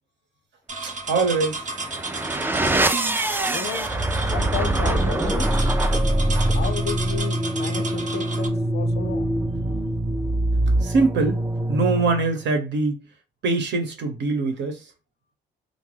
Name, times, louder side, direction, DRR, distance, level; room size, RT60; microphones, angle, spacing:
sound 1, 0.7-8.5, right 3 dB, 40° right, 0.7 m, -33 dB
voice 1, 0.8-1.6 10.8-11.4 11.7-13.1 13.4-14.8, right 3 dB, 65° right, 1.0 m, -23 dB
sound 2, 1.6-12.4, right 1 dB, 10° right, 0.3 m, -23 dB
voice 2, 3.4-3.9 4.2-5.5 6.5-9.3, left 8 dB, 55° left, 0.5 m, -33 dB
2.7 x 2.2 x 3.2 m
cardioid pair, 90°, 20 cm